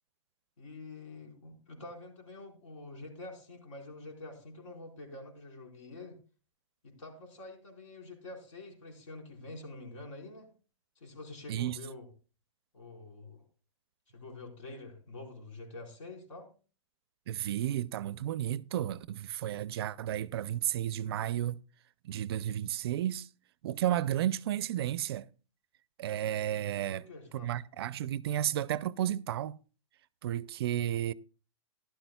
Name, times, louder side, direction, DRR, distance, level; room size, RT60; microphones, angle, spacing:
voice 1, 0.6-6.2 6.8-10.5 11.0-12.1 12.7-13.4 14.1-16.5 26.9-27.5, left 2 dB, 75° left, 4.4 m, -47 dB
voice 2, 17.3-21.6 22.0-23.3 23.6-25.3 26.0-27.0 27.3-29.6 30.2-31.1, right 11 dB, 50° right, 0.4 m, -32 dB
15.0 x 12.0 x 2.2 m
hypercardioid pair, 155°, 16 cm